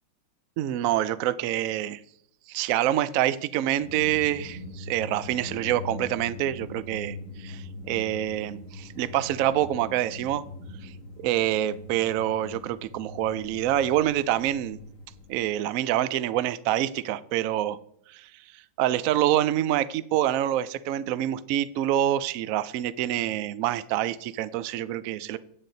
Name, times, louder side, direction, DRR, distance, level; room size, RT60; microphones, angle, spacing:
voice 1, 0.6-2.0 2.5-10.4 10.8-10.9 11.2-14.8 15.3-17.8 18.1-18.3 18.8-25.4, right 12 dB, 75° right, 15 dB, 0.7 m, -26 dB
sound 1, 3.8-15.3, left 2 dB, 45° left, 2.3 m, -42 dB
9.0 x 8.4 x 3.9 m, 0.69 s
omnidirectional pair, 1.9 m